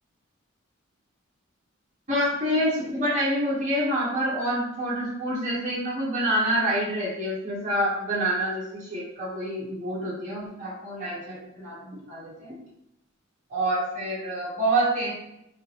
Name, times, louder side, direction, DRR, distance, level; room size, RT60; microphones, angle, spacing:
voice 1, 2.1-12.5 13.5-15.1, right 1 dB, 40° right, -7 dB, 1.5 m, -27 dB
3.9 x 2.6 x 3.2 m, 0.81 s
head